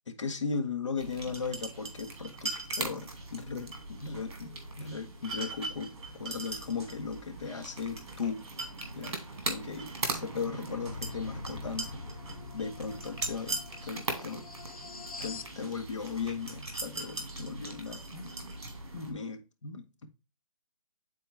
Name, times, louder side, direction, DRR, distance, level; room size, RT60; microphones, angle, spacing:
voice 1, 0.1-8.4 8.9-12.0 12.5-14.5 15.2-18.6 18.9-20.1, left 5 dB, 55° left, 1.4 m, -37 dB
sound 1, 1.0-19.1, right 2 dB, 50° right, 2.2 m, -40 dB
sound 2, 10.7-15.6, left 4 dB, 80° left, 0.8 m, -44 dB
8.9 x 4.2 x 3.4 m
hypercardioid pair, 175°, 18 cm